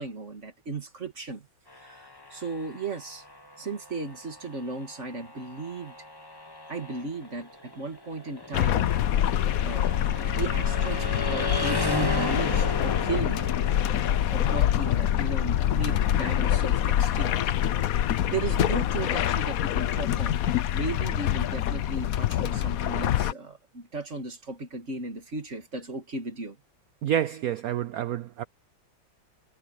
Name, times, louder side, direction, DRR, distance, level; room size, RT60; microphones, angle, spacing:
voice 1, 0.0-1.5 1.7-3.2 3.6-5.9 6.7-8.9 9.6-9.9 10.3-13.4 14.3-17.4 18.0-20.4 20.7-26.6, right 3 dB, 35° right, 2.4 m, -35 dB
sound 1, 1.7-17.5, left 2 dB, 15° left, 1.3 m, -36 dB
sound 2, 8.5-23.3, left 11 dB, 65° left, 0.9 m, -25 dB
voice 2, 27.0-28.4, right 10 dB, 80° right, 0.8 m, -28 dB
omnidirectional pair, 2.2 m